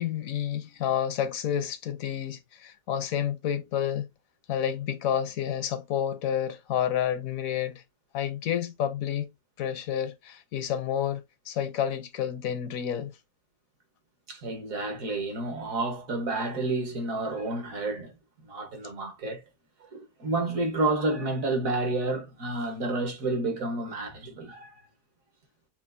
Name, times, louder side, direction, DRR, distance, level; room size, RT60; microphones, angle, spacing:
voice 1, 0.0-4.1 4.5-7.8 8.1-9.3 9.6-13.1, left 9 dB, 70° left, 1.0 m, -29 dB
voice 2, 14.3-18.1 18.5-19.4 19.9-24.9, right 2 dB, 65° right, 1.6 m, -30 dB
7.1 x 2.5 x 2.5 m
omnidirectional pair, 1.5 m